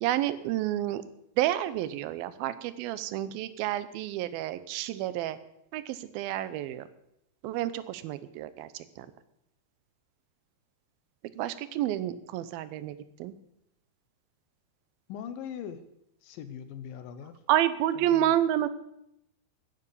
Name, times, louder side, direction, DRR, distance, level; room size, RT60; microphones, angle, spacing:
voice 1, 0.0-1.0 1.4-5.4 5.7-6.8 7.4-9.1 11.4-13.3 17.5-18.7, right 12 dB, 80° right, 14 dB, 2.6 m, -29 dB
voice 2, 15.1-15.8 16.2-17.4 18.0-18.4, left 8 dB, 75° left, 10 dB, 2.4 m, -41 dB
11.0 x 9.6 x 8.5 m, 0.79 s
omnidirectional pair, 4.4 m